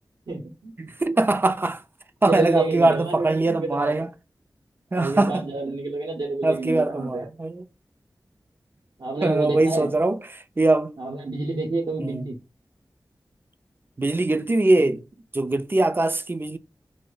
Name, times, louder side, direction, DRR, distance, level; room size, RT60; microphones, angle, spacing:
voice 1, 0.3-0.7 2.2-3.9 4.9-7.3 9.0-9.9 11.0-12.4, right 2 dB, 80° right, 0.7 m, -28 dB
voice 2, 0.8-1.8 2.2-4.1 4.9-5.4 6.4-7.6 9.2-10.9 12.0-12.3 14.0-15.0 15.3-16.6, right 2 dB, 30° right, 0.3 m, -22 dB
3.1 x 2.0 x 3.6 m
wide cardioid pair, 60°, 7 cm